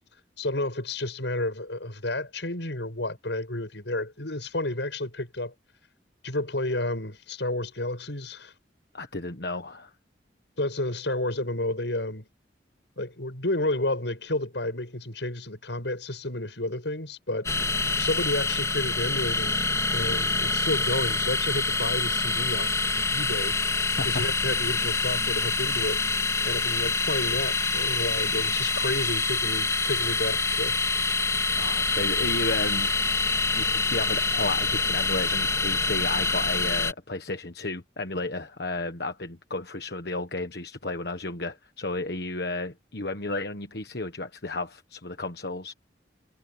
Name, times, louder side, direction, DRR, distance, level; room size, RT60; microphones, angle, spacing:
voice 1, 0.4-5.5 6.2-8.5 10.6-12.3 13.0-17.5 18.0-19.6 19.9-22.8 23.1-26.2 26.4-30.8, left 2 dB, 80° left, 6.4 m, -31 dB
voice 2, 8.9-9.9 24.0-24.2 31.6-32.9 33.5-45.7, left 2 dB, 60° left, 1.4 m, -33 dB
sound 1, 17.4-36.9, left 3 dB, 20° left, 4.2 m, -26 dB
head